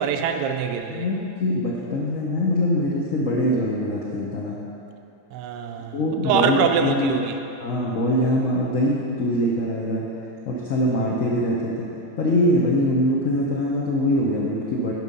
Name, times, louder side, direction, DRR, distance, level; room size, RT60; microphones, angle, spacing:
voice 1, 0.0-1.1 5.3-6.0 6.2-7.3, right 7 dB, 70° right, 5 dB, 1.1 m, -24 dB
voice 2, 0.9-4.6 5.9-7.2 7.6-10.1 10.5-11.9 12.2-14.9, left 1 dB, 50° left, -4 dB, 1.2 m, -23 dB
11.0 x 5.6 x 5.4 m, 2.8 s
omnidirectional pair, 2.1 m